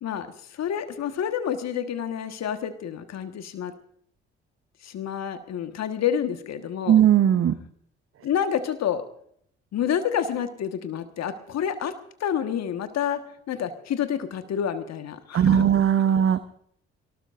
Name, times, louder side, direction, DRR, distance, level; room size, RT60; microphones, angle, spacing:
voice 1, 0.0-3.7 4.8-7.0 8.2-9.0 9.7-11.9 12.2-13.2 13.5-15.6, left 9 dB, 55° left, 8 dB, 1.5 m, -28 dB
voice 2, 6.9-7.6 15.3-16.4, right 9 dB, 45° right, 12 dB, 0.9 m, -18 dB
24.0 x 19.0 x 2.6 m, 0.65 s
hypercardioid pair, 45°, 32 cm